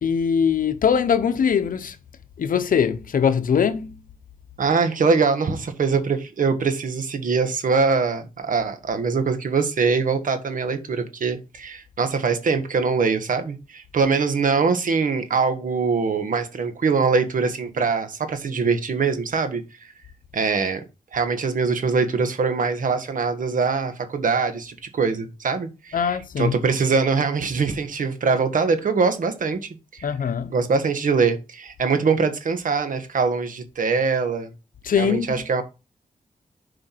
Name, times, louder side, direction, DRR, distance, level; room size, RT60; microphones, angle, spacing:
voice 1, 0.0-2.0 2.4-4.0 25.9-26.5 30.0-30.5 34.8-35.4, left 7 dB, 80° left, 1.0 m, -21 dB
voice 2, 4.6-19.6 20.3-20.8 21.1-30.1 30.5-34.5 35.0-35.6, right 5 dB, 70° right, 1.6 m, -23 dB
8.1 x 5.1 x 4.6 m
cardioid pair, 80°, 14 cm